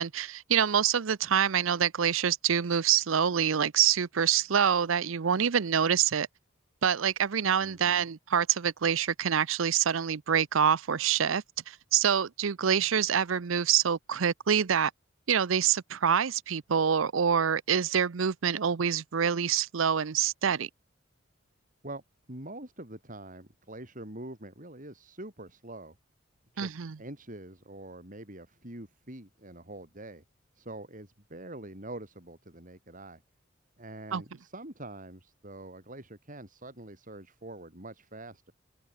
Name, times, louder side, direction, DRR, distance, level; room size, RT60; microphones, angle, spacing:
voice 1, 0.0-6.3 6.8-14.9 15.3-20.7 26.6-27.0 34.1-34.2, right 8 dB, 80° right, 0.6 m, -26 dB
voice 2, 7.6-8.1 21.8-22.0 22.3-26.0 26.5-30.2 30.5-33.2 33.8-38.5, right 1 dB, 40° right, 6.7 m, -45 dB
head